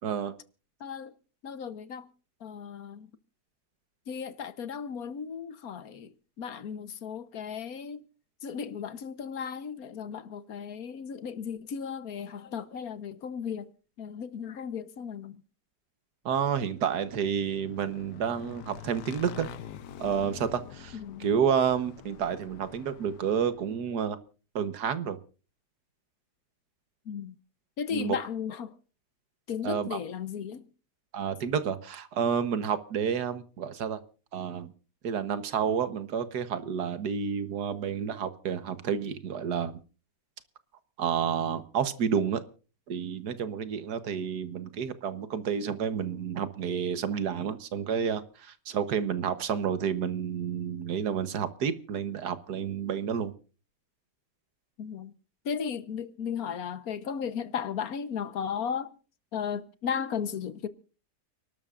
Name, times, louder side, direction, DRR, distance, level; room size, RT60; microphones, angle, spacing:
voice 1, 0.0-0.3 16.2-19.5 20.0-24.2 24.5-25.2 27.9-28.2 29.6-30.0 31.1-34.0 34.3-34.7 35.0-39.8 41.0-42.4 42.9-53.3, right 7 dB, 75° right, 1.7 m, -30 dB
voice 2, 0.8-1.1 1.4-2.1 2.4-3.1 4.1-6.1 6.4-8.0 8.4-13.7 14.0-15.4 20.9-21.3 27.1-27.3 27.8-28.8 29.5-30.7 54.8-55.1 55.4-58.9 59.3-60.7, left 7 dB, 65° left, 1.3 m, -35 dB
Motorcycle / Engine, 16.6-23.9, left 9 dB, 85° left, 1.5 m, -46 dB
30.0 x 12.5 x 2.4 m
omnidirectional pair, 1.8 m